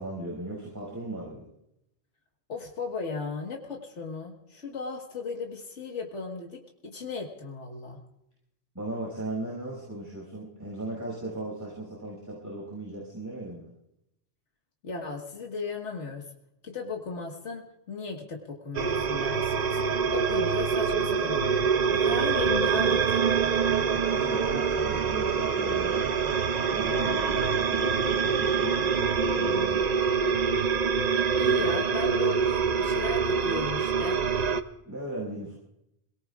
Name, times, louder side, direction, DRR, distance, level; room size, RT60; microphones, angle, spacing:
voice 1, 0.0-1.4 8.7-13.7 24.1-26.2 26.7-29.8 34.8-35.5, right 2 dB, 15° right, -5 dB, 5.5 m, -37 dB
voice 2, 2.5-8.0 14.8-16.2 16.6-19.8 20.1-23.2 31.4-34.2, left 4 dB, 85° left, 1 dB, 1.9 m, -36 dB
sound 1, 18.7-34.6, right 6 dB, 45° right, 0.6 m, -25 dB
27.0 x 18.0 x 2.4 m, 0.82 s
omnidirectional pair, 1.2 m